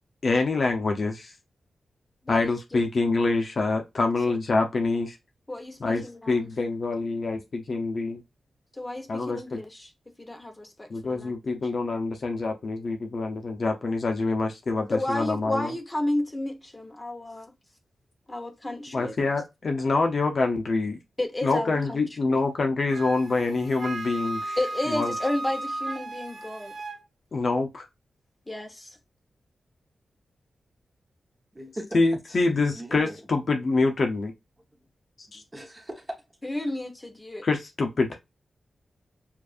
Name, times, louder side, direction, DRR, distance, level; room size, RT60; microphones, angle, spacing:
voice 1, 0.2-1.3 2.3-5.2 5.8-8.2 9.1-9.6 10.9-15.7 18.9-21.0 21.4-24.6 24.9-25.1 27.3-27.9 31.9-34.3 35.3-35.4 37.4-38.2, left 3 dB, 45° left, 0.8 m, -26 dB
voice 2, 2.2-2.8 4.3-4.4 5.5-6.4 8.8-9.9 10.2-11.4 14.9-17.5 18.3-19.1 21.2-22.0 22.3-22.4 24.6-26.7 28.5-28.9 36.4-37.5, left 1 dB, 15° left, 1.1 m, -32 dB
Wind instrument woodwind instrument, 22.9-27.0, right 2 dB, 80° right, 1.3 m, -35 dB
voice 3, 31.5-33.2 35.3-36.2, right 1 dB, 15° right, 1.1 m, -40 dB
7.1 x 2.6 x 2.5 m
wide cardioid pair, 135°, 0 cm